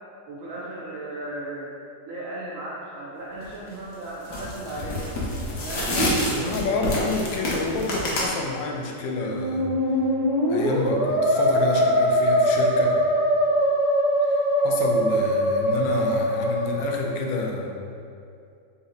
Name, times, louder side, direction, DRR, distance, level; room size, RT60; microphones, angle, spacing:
voice 1, 0.3-1.7 2.1-5.1 5.6-6.0, right 1 dB, 75° right, -6 dB, 0.7 m, -35 dB
sound 1, 3.4-3.7 4.2-8.3, equal, 60° left, 1.2 m, -27 dB
voice 2, 6.4-9.7 10.5-13.0 14.3-17.7, left 3 dB, 85° left, 1 dB, 1.3 m, -29 dB
Musical instrument, 9.1-17.2, equal, 35° left, 0.5 m, -22 dB
4.3 x 2.8 x 3.8 m, 2.5 s
omnidirectional pair, 1.9 m